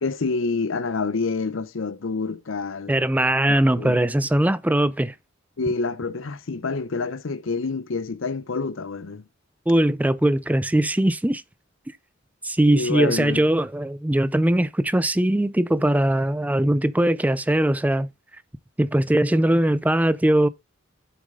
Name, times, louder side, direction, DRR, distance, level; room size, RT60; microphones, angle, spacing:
voice 1, 0.0-2.9 3.5-4.0 5.6-9.2 12.7-13.4, left 4 dB, 75° left, 0.7 m, -27 dB
voice 2, 2.9-5.1 9.7-11.4 12.4-18.1 18.8-20.5, right 1 dB, 10° right, 0.4 m, -20 dB
7.8 x 6.4 x 3.7 m
head